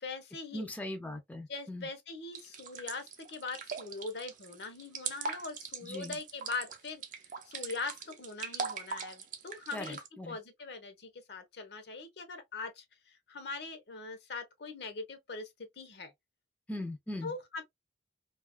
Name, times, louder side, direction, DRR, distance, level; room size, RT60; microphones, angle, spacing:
voice 1, 0.0-0.7 1.5-7.0 7.4-10.0 10.3-16.1 17.2-17.6, left 3 dB, 65° left, 0.7 m, -42 dB
voice 2, 0.5-1.9 5.8-6.2 9.7-10.4 16.7-17.3, left 1 dB, 10° left, 0.4 m, -40 dB
sound 1, 2.3-10.1, right 5 dB, 45° right, 0.5 m, -40 dB
2.7 x 2.3 x 2.2 m
head